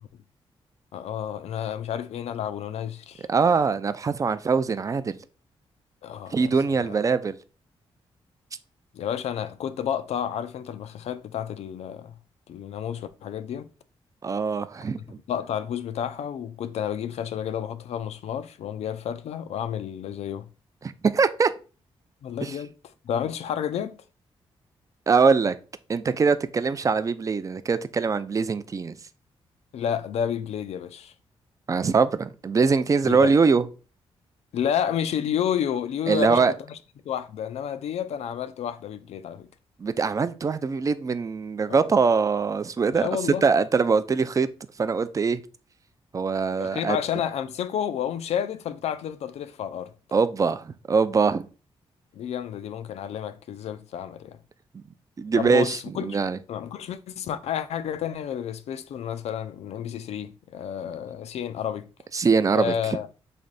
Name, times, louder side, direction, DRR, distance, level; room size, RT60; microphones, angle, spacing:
voice 1, 0.9-3.3 6.0-7.0 8.9-12.2 12.5-13.7 15.0-20.5 22.2-22.7 23.0-24.0 29.7-31.1 33.1-33.4 34.5-36.8 37.1-39.5 41.7-41.9 42.9-43.5 46.6-49.9 52.1-54.4 55.4-56.2 56.5-61.9 62.5-63.1, left 9 dB, 75° left, 0.4 m, -30 dB
voice 2, 3.3-5.2 6.3-7.4 14.2-15.2 20.8-21.5 22.4-22.5 25.1-25.5 25.9-29.0 31.7-33.6 36.1-36.5 39.8-43.1 43.4-44.5 44.8-45.4 46.1-47.0 50.1-51.5 55.2-56.4 62.1-62.7, right 5 dB, 30° right, 0.3 m, -22 dB
3.3 x 2.6 x 4.0 m
cardioid pair, 80°, 11 cm